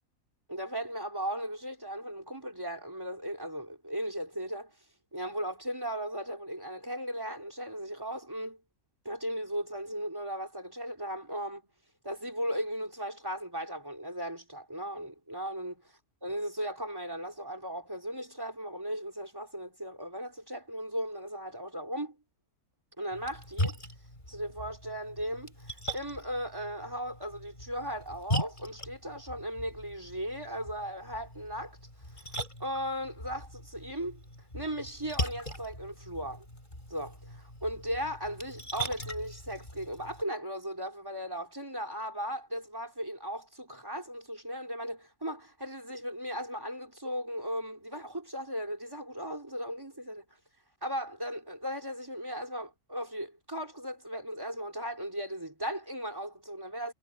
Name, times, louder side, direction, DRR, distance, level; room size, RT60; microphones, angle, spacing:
voice 1, 0.5-4.8 5.1-8.6 9.0-11.7 12.0-15.8 16.2-22.2 23.0-23.8 24.3-31.8 32.1-34.2 34.5-36.5 36.9-50.3 50.8-56.9, equal, 15° right, 4.2 m, -37 dB
Splash splatter, 23.1-40.2, equal, 30° left, 8.1 m, -40 dB
omnidirectional pair, 1.5 m